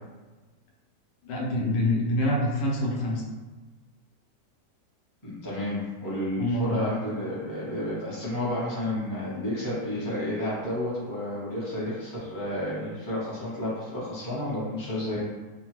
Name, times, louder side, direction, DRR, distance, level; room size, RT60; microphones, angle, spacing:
voice 1, 1.2-3.2 6.4-6.8, left 1 dB, 80° left, -2 dB, 1.2 m, -26 dB
voice 2, 5.2-15.2, left 1 dB, 20° left, -8 dB, 0.6 m, -31 dB
2.9 x 2.2 x 2.9 m, 1.3 s
omnidirectional pair, 1.9 m